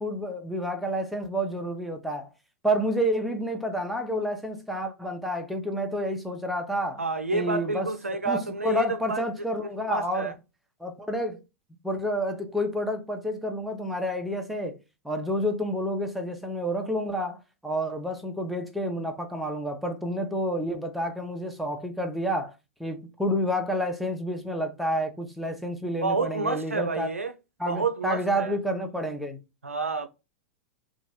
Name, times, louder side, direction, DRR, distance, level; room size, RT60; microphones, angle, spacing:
voice 1, 0.0-2.3 2.6-7.0 7.3-7.9 8.3-10.3 10.8-11.4 11.8-14.8 15.0-22.5 22.8-27.1 27.6-29.4, equal, ahead, 0.5 m, -29 dB
voice 2, 7.0-9.5 9.9-10.3 26.0-27.3 27.6-28.5 29.6-30.1, right 4 dB, 90° right, 0.3 m, -29 dB
2.9 x 2.3 x 2.8 m
figure-of-eight pair, 100°, 7 cm